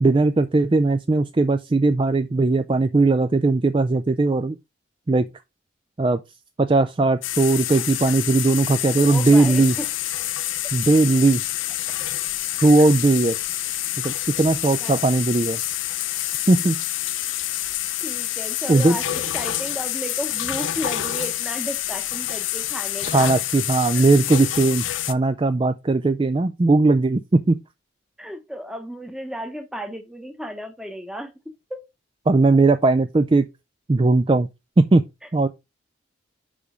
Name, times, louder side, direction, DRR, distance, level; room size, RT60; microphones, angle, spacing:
voice 1, 0.0-4.6 5.1-5.3 6.0-6.2 6.6-9.7 10.7-11.4 12.6-13.4 14.0-15.6 16.5-16.8 18.7-19.0 23.1-27.6 32.3-33.4 33.9-34.5 34.8-35.0 35.3-35.5, right 3 dB, 25° right, 0.3 m, -18 dB
sound 1, 7.2-25.1, left 13 dB, 75° left, 0.6 m, -27 dB
voice 2, 9.0-9.9 12.0-12.1 14.8-15.0 18.0-19.1 19.3-23.3 23.9-24.2 28.2-31.9, equal, 5° right, 0.9 m, -34 dB
5.3 x 5.0 x 4.9 m
head